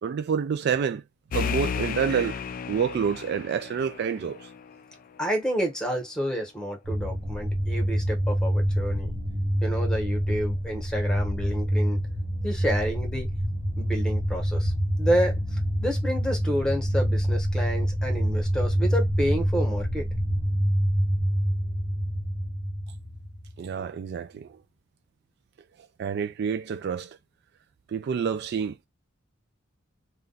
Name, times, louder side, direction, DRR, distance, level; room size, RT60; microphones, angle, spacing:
voice 1, 0.0-1.0 1.3-2.4 2.7-4.5 23.6-24.6 26.0-27.2 27.9-28.8, right 7 dB, 55° right, 0.3 m, -28 dB
sound 1, 1.3-4.8, left 7 dB, 45° left, 0.3 m, -33 dB
voice 2, 5.2-9.1 9.6-12.0 12.4-13.3 13.8-14.7 15.0-20.1, equal, 5° left, 1.1 m, -29 dB
sound 2, 6.8-23.7, equal, 35° right, 1.1 m, -26 dB
2.5 x 2.3 x 3.9 m
head